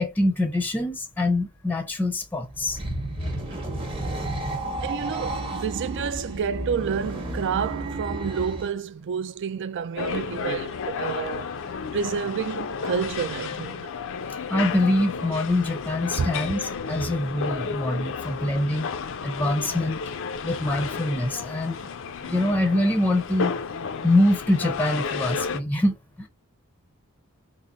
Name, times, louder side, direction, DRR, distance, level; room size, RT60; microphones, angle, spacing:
voice 1, 0.0-2.8 3.2-3.4 14.5-18.9 19.2-20.0 20.4-21.9 22.2-23.5 24.0-26.3, left 1 dB, 10° left, 0.6 m, -24 dB
sound 1, 2.5-8.7, right 1 dB, 25° right, 1.0 m, -32 dB
voice 2, 4.8-11.5 11.9-13.9 16.2-16.3, right 7 dB, 55° right, 0.4 m, -29 dB
sound 2, 10.0-25.6, left 5 dB, 60° left, 0.5 m, -32 dB
3.6 x 2.0 x 3.9 m
head